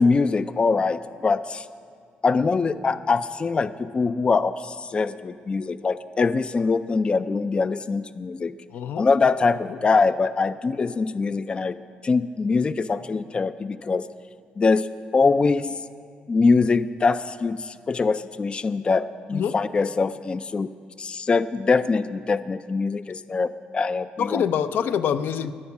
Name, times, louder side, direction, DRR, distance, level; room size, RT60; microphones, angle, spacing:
voice 1, 0.0-1.7 2.2-8.5 9.0-11.8 12.0-14.1 14.6-14.9 15.1-15.7 16.3-20.7 21.0-24.4, left 4 dB, 30° left, 13 dB, 0.3 m, -23 dB
voice 2, 8.7-9.1 9.7-9.8 19.3-19.5 24.2-25.5, left 8 dB, 75° left, 11 dB, 0.6 m, -25 dB
19.5 x 7.1 x 7.2 m, 2.2 s
cardioid pair, 100°, 3 cm